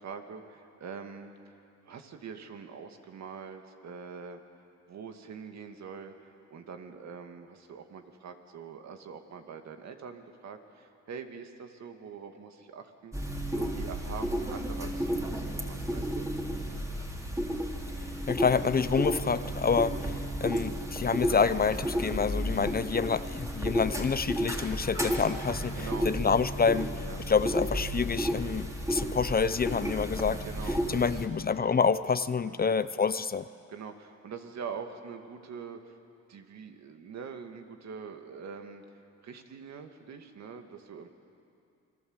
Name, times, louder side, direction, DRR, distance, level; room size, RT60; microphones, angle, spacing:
voice 1, 0.0-1.6 1.8-4.4 4.9-16.3 20.0-20.2 25.8-26.1 27.0-27.2 30.4-31.1 32.4-32.7 33.7-36.0 36.3-38.8 39.2-41.1, right 6 dB, 60° right, 6 dB, 2.3 m, -44 dB
sound 1, 13.1-31.3, equal, 10° right, 3.5 m, -32 dB
voice 2, 18.3-30.4 30.9-33.4, left 5 dB, 30° left, 14 dB, 0.7 m, -28 dB
28.5 x 21.5 x 8.1 m, 2.5 s
cardioid pair, 90°, 30 cm